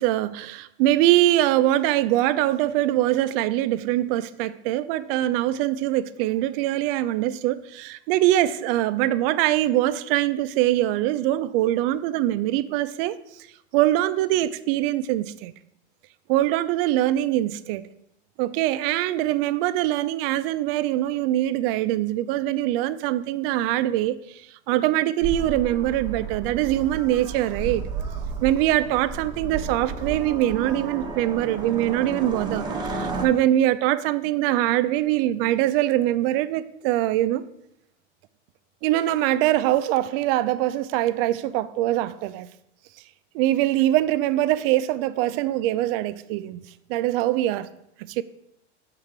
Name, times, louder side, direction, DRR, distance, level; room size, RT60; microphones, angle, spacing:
voice 1, 0.0-13.1 13.7-15.5 16.3-17.8 18.4-24.4 24.7-27.8 28.4-37.4 38.8-42.5 43.3-46.6 46.9-47.7 48.0-48.2, right 14 dB, 55° right, 0.5 m, -23 dB
sound 1, 25.2-33.3, right 4 dB, 10° right, 0.9 m, -32 dB
6.5 x 3.8 x 5.9 m
hypercardioid pair, 110°, 35 cm